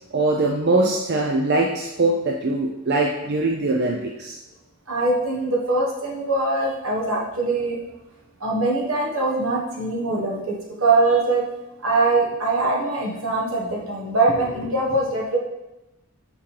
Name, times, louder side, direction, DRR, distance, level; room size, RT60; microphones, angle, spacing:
voice 1, 0.1-4.4, right 2 dB, 55° right, 0 dB, 0.5 m, -22 dB
voice 2, 4.9-7.8 8.4-11.4 11.8-15.4, right 2 dB, 75° right, -2 dB, 1.4 m, -22 dB
5.6 x 5.2 x 3.3 m, 0.97 s
head